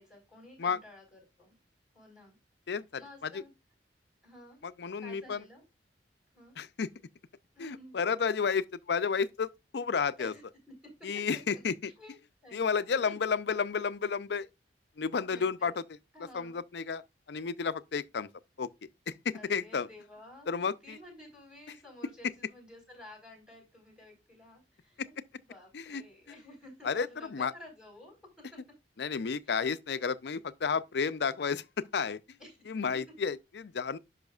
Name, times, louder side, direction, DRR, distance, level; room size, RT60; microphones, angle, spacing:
voice 1, 0.0-1.5 1.9-2.4 3.0-3.5 4.2-4.6 5.0-5.6 6.3-6.6 7.5-7.9 10.2-10.4 11.0-11.6 12.0-12.2 12.4-13.2 15.2-15.7 16.1-16.6 19.3-25.1 25.5-28.6 29.4-29.6 32.4-32.6, left 1 dB, 5° right, 4.6 m, -52 dB
voice 2, 2.7-3.4 4.6-5.4 6.6-6.9 7.6-10.3 11.0-11.9 12.5-14.5 15.0-15.8 16.3-17.0 17.3-18.3 18.6-18.7 19.1-19.9 20.5-21.0 25.7-26.0 26.8-27.5 29.0-32.2 32.7-34.0, left 5 dB, 70° left, 0.5 m, -32 dB
10.5 x 5.6 x 2.4 m
head